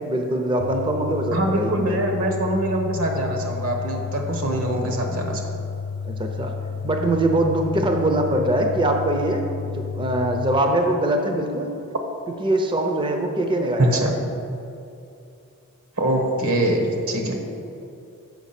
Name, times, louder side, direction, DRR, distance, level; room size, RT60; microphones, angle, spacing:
voice 1, 0.0-2.0 6.1-6.5 6.8-11.7 12.4-14.1, right 1 dB, 20° right, 3 dB, 0.6 m, -23 dB
sound 1, 0.6-10.6, left 5 dB, 75° left, 0.3 m, -31 dB
voice 2, 1.3-5.4 13.8-14.1 16.0-17.4, right 1 dB, 75° right, 3 dB, 1.2 m, -23 dB
7.2 x 5.9 x 5.8 m, 2.7 s
head